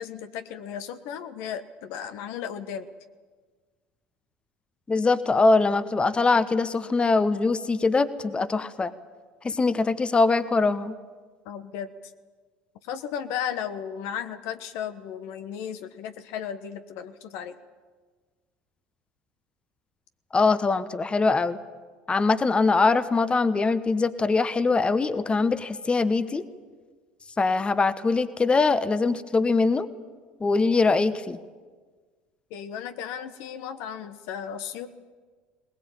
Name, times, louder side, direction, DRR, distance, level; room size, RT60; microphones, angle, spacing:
voice 1, 0.0-2.9 11.4-11.9 12.8-17.6 32.5-34.9, left 8 dB, 65° left, 9 dB, 1.4 m, -35 dB
voice 2, 4.9-8.9 9.4-10.9 20.3-21.6 22.1-26.4 27.4-29.9 30.4-31.4, left 3 dB, 20° left, 13 dB, 1.2 m, -22 dB
20.5 x 20.0 x 8.9 m, 1.4 s
hypercardioid pair, 70°, 5 cm